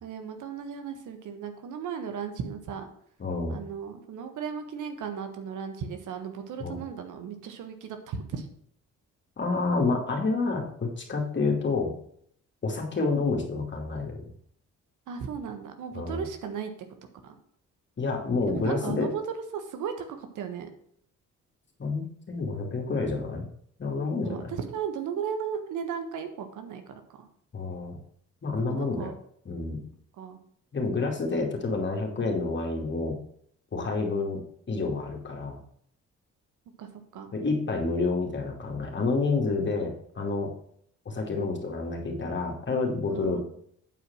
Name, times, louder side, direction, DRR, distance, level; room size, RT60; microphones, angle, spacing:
voice 1, 0.0-2.9 3.5-8.5 15.1-16.7 17.2-17.4 18.5-19.2 19.5-20.7 24.2-26.8 27.1-27.3 28.6-29.1 30.2-30.4 36.8-37.3 43.1-43.4, right 7 dB, 80° right, 7 dB, 1.4 m, -36 dB
voice 2, 3.2-3.6 6.6-6.8 9.4-11.9 12.6-14.2 15.9-16.2 18.0-19.1 21.8-23.5 23.8-24.5 27.5-28.0 28.4-29.1 29.5-29.8 30.7-33.2 33.7-34.4 34.7-35.6 37.3-40.5 41.1-43.4, left 3 dB, 40° left, 1 dB, 2.6 m, -29 dB
8.7 x 4.9 x 6.2 m, 0.66 s
cardioid pair, 90°, 30 cm